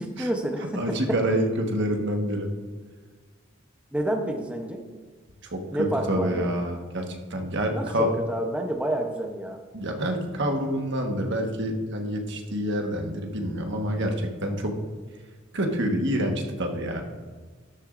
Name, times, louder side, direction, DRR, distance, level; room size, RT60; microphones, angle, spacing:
voice 1, 0.2-1.0 3.9-4.8 5.7-6.6 7.7-9.6, right 1 dB, 5° right, 2 dB, 0.8 m, -29 dB
voice 2, 0.7-2.5 5.5-7.0 7.3-8.1 9.7-14.7 15.5-17.0, equal, 65° right, 3 dB, 1.4 m, -27 dB
13.0 x 10.5 x 2.6 m, 1.4 s
head